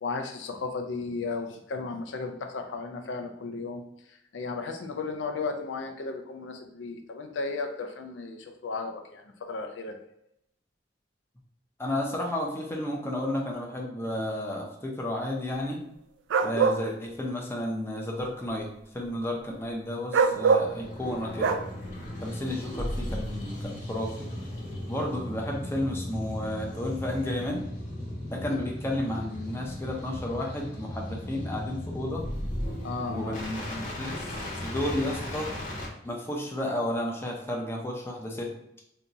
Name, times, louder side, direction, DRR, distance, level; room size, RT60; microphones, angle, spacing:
voice 1, 0.0-10.0 28.5-28.7 32.8-33.4, left 4 dB, 80° left, 4 dB, 0.4 m, -35 dB
voice 2, 11.8-15.8 16.4-18.7 18.9-21.6 22.2-24.3 24.9-27.6 28.3-32.2 33.1-34.3 34.6-35.5 36.0-38.5, left 1 dB, 15° left, -1 dB, 0.6 m, -32 dB
sound 1, 16.3-16.8 20.1-20.7 21.4-21.6, right 5 dB, 80° right, 0.3 m, -22 dB
sound 2, 20.6-35.9, left 1 dB, 40° left, 1.0 m, -36 dB
2.7 x 2.3 x 3.9 m, 0.78 s
head